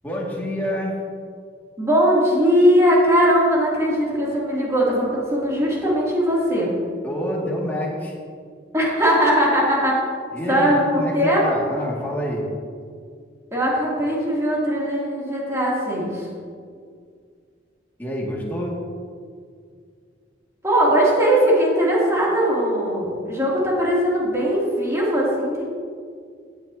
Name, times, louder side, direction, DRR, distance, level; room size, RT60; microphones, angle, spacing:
voice 1, 0.0-1.0 7.0-8.2 10.3-12.5 18.0-18.8, equal, 10° left, -4 dB, 2.1 m, -27 dB
voice 2, 1.8-6.7 8.7-10.0 10.5-11.4 13.5-16.3 20.6-25.6, equal, 15° right, -6 dB, 2.7 m, -19 dB
15.5 x 9.4 x 2.8 m, 2.1 s
head